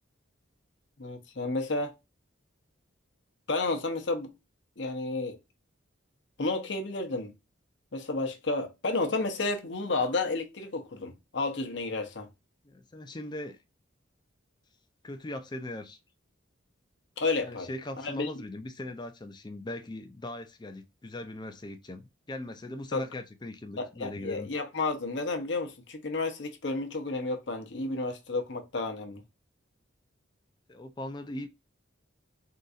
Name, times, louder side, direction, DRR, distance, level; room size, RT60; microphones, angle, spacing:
voice 1, 1.0-1.9 3.5-4.3 4.8-5.4 6.4-7.3 7.9-12.3 17.2-17.7 18.0-18.3 22.9-23.0 23.8-29.2, left 3 dB, 60° left, 0.8 m, -31 dB
voice 2, 12.6-13.6 15.0-16.0 17.4-24.5 30.7-31.5, left 1 dB, 20° left, 0.4 m, -39 dB
3.8 x 2.6 x 2.4 m
head